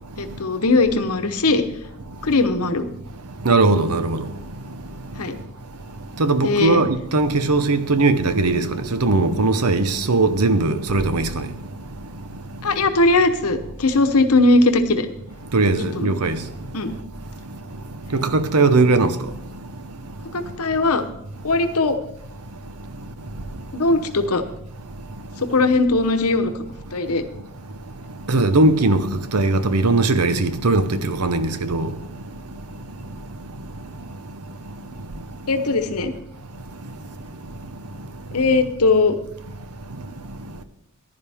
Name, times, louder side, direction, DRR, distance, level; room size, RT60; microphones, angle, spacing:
voice 1, 0.2-1.6 2.2-2.9 5.2-5.4 6.4-6.8 12.6-15.1 15.9-16.1 16.7-16.9 20.3-21.0 21.4-22.0 23.7-24.4 25.4-26.5 26.9-27.2 35.5-36.1 38.3-39.2, left 3 dB, 80° left, 1.0 m, -19 dB
voice 2, 3.4-4.2 6.2-11.4 15.5-16.4 18.1-19.1 28.3-29.0 29.3-31.9, right 3 dB, 90° right, 0.9 m, -19 dB
14.5 x 11.0 x 3.5 m
head